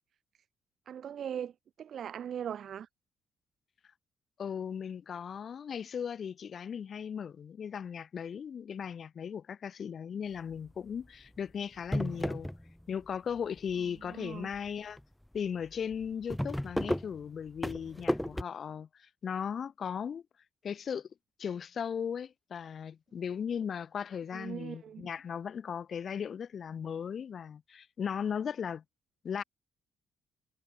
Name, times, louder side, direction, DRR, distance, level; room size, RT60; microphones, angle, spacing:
voice 1, 0.9-1.5 1.8-2.9 14.1-14.5 24.3-25.0, right 9 dB, 60° right, 1.6 m, -39 dB
voice 2, 4.4-12.5 12.9-15.0 15.3-20.2 20.6-21.1 21.4-28.8 29.2-29.4, left 7 dB, 50° left, 7.2 m, -37 dB
sound 1, 10.5-10.9 11.4-11.5 11.8-13.1 13.4-14.0 14.5-14.7 15.0-15.1 15.3-15.4 15.8-18.4, equal, 5° left, 1.3 m, -33 dB
cardioid pair, 90°, 0 cm